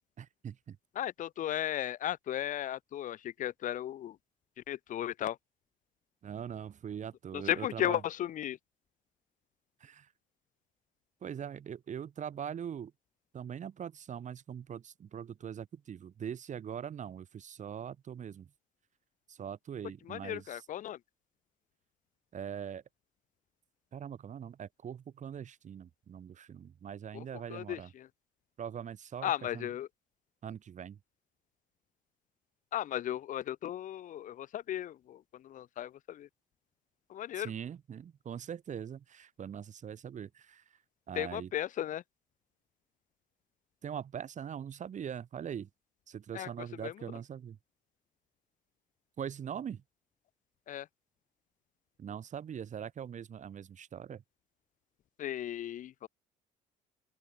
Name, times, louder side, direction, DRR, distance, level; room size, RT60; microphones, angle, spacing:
voice 1, 0.2-0.8 6.2-8.0 9.8-10.1 11.2-12.9 13.3-18.5 19.3-20.7 22.3-22.8 23.9-27.9 28.6-29.7 30.4-31.0 37.3-40.8 41.1-41.5 43.8-45.7 46.1-47.6 49.2-49.8 52.0-54.2, right 8 dB, 45° right, 5.0 m, -42 dB
voice 2, 1.0-4.2 4.7-5.4 7.3-8.6 20.1-21.0 27.1-27.2 27.5-28.1 29.2-29.9 32.7-36.3 37.1-37.5 41.2-42.0 46.3-46.5 46.8-46.9 50.7-50.9 55.2-56.1, left 11 dB, 50° left, 0.6 m, -35 dB
open air
cardioid pair, 110°, 17 cm